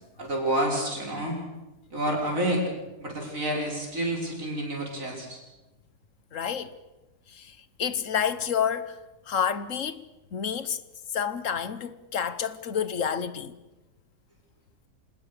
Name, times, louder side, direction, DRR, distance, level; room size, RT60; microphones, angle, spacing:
voice 1, 0.2-1.4 1.9-2.7 3.0-5.4, right 1 dB, 55° right, 6.3 m, -29 dB
voice 2, 6.3-6.7 7.3-9.0 9.3-10.0 10.3-10.8 11.1-13.6, left 7 dB, 60° left, 1.3 m, -29 dB
26.0 x 20.0 x 6.7 m
omnidirectional pair, 1.6 m